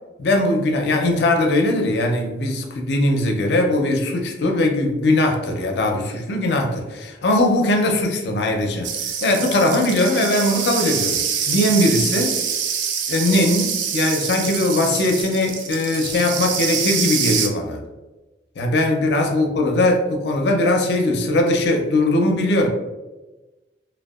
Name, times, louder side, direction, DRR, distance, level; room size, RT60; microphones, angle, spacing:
voice 1, 0.2-8.9 9.2-12.4 13.1-17.8 18.6-22.7, left 1 dB, 65° left, 2 dB, 0.4 m, -20 dB
sound 1, 8.8-17.5, right 7 dB, 80° right, 0.3 m, -25 dB
2.6 x 2.2 x 2.3 m, 1.1 s
head